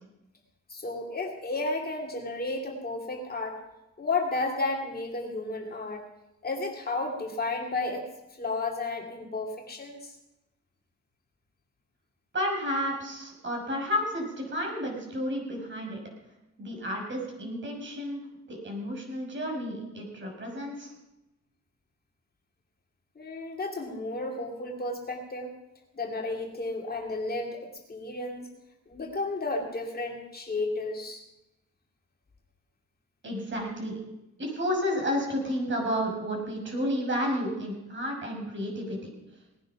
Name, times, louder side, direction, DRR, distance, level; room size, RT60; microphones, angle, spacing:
voice 1, 0.7-3.6 4.0-6.0 6.4-8.1 8.4-10.1 23.2-25.5 25.9-28.5 28.9-31.2, left 3 dB, 30° left, 1 dB, 2.5 m, -32 dB
voice 2, 12.3-16.0 16.6-20.9 33.2-34.0 34.4-39.1, equal, 40° right, 1 dB, 5.9 m, -31 dB
19.0 x 10.0 x 5.8 m, 0.95 s
cardioid pair, 90°, 30 cm